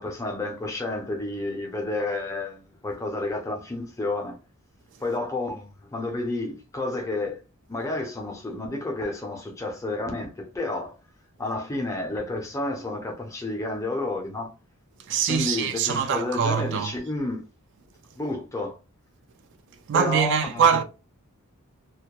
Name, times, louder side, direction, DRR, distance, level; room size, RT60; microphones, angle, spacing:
voice 1, 0.0-4.4 5.0-7.4 7.7-10.9 11.4-14.5 15.3-17.5 18.1-18.8 19.9-20.6, left 2 dB, 15° left, 0.4 m, -30 dB
voice 2, 15.1-16.9 19.9-20.8, right 7 dB, 55° right, 0.3 m, -23 dB
2.2 x 2.1 x 2.8 m
head